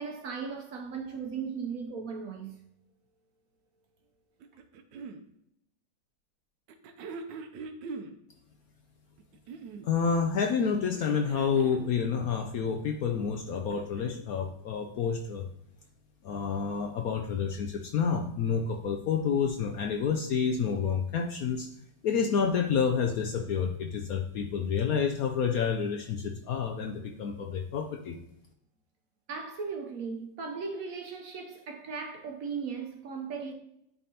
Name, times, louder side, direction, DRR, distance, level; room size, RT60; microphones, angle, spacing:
voice 1, 0.0-2.5 29.3-33.5, right 5 dB, 60° right, 1.0 m, -37 dB
sound 1, 4.4-5.2 6.7-8.1 9.2-9.9 10.9-11.9 13.4-14.3 15.4-15.5, right 4 dB, 80° right, 1.3 m, -42 dB
voice 2, 9.8-15.5 16.2-21.7 22.0-28.2, left 6 dB, 70° left, 0.9 m, -29 dB
10.5 x 3.6 x 2.8 m
omnidirectional pair, 1.9 m